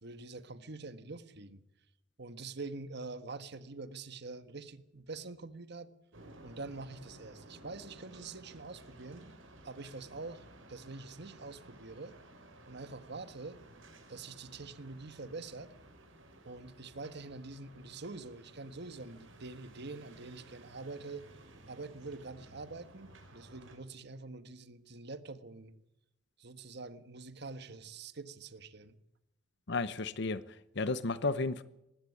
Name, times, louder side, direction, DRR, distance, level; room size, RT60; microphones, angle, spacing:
voice 1, 0.0-1.6 2.2-5.9 6.4-9.3 9.6-12.2 12.7-13.6 14.1-15.7 16.4-21.3 21.7-25.7 26.4-29.0, right 3 dB, 60° right, 12 dB, 1.5 m, -45 dB
sound 1, 6.1-23.8, right 1 dB, 85° right, 5.1 m, -56 dB
voice 2, 29.7-31.6, left 3 dB, 60° left, 15 dB, 0.9 m, -33 dB
20.0 x 16.0 x 8.5 m, 0.85 s
head